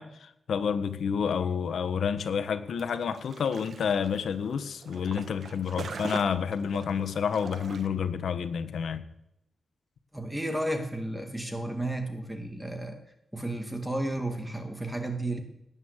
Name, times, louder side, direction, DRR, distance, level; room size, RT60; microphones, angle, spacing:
voice 1, 0.0-9.0, left 7 dB, 75° left, 10 dB, 1.3 m, -29 dB
sound 1, 2.8-7.9, right 5 dB, 55° right, 1.3 m, -43 dB
voice 2, 10.1-13.0 13.3-15.4, right 1 dB, 5° right, 6 dB, 1.9 m, -32 dB
18.0 x 9.2 x 8.1 m, 0.80 s
wide cardioid pair, 150°, 0 cm